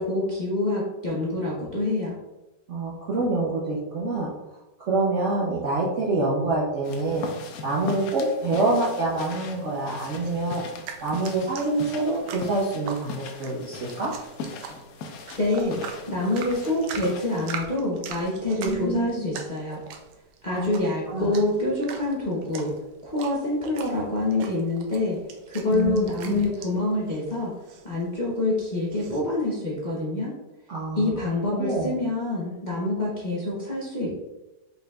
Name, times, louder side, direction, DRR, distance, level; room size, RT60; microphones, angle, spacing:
voice 1, 0.0-2.2 15.4-15.8 16.1-19.8 20.4-22.7 23.0-25.2 25.5-27.5 27.8-30.3 31.0-34.1, left 2 dB, 35° left, -7 dB, 0.7 m, -26 dB
voice 2, 2.7-4.3 4.8-7.2 7.6-10.6 11.0-14.1 18.6-19.2 20.5-20.7 21.1-21.4 25.7-26.5 30.7-31.1 31.5-31.9, right 2 dB, 60° right, -4 dB, 0.8 m, -26 dB
sound 1, 6.8-17.6, left 4 dB, 70° left, 1.0 m, -40 dB
sound 2, 10.2-29.2, right 6 dB, 80° right, 1.3 m, -42 dB
5.5 x 4.0 x 2.4 m, 1.0 s
omnidirectional pair, 1.9 m